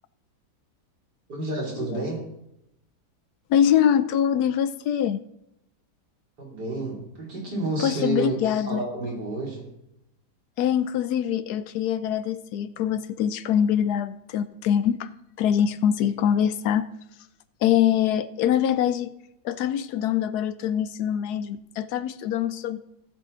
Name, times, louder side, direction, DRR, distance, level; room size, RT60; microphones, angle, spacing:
voice 1, 1.3-2.3 6.4-8.4 8.7-9.7, right 2 dB, 75° right, -2 dB, 3.6 m, -30 dB
voice 2, 3.5-5.2 7.8-8.8 10.6-15.1 15.4-16.9 17.6-19.1 19.4-22.8, left 9 dB, 75° left, 14 dB, 1.1 m, -24 dB
16.5 x 7.6 x 3.9 m, 0.84 s
omnidirectional pair, 1.8 m